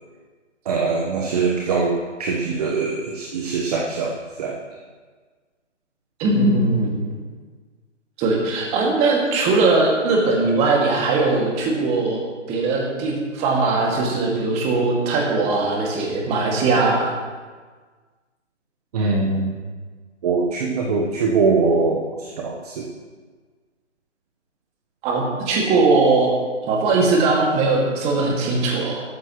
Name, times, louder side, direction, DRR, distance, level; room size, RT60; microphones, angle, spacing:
voice 1, 0.6-4.6 18.9-19.6 20.2-22.9, right 4 dB, 30° right, 0 dB, 1.2 m, -22 dB
voice 2, 6.2-7.2 8.2-12.2 12.5-17.1 25.0-26.3 26.6-29.0, right 3 dB, 15° right, -1 dB, 2.2 m, -20 dB
17.0 x 13.5 x 3.1 m, 1.5 s
figure-of-eight pair, 145°, 37 cm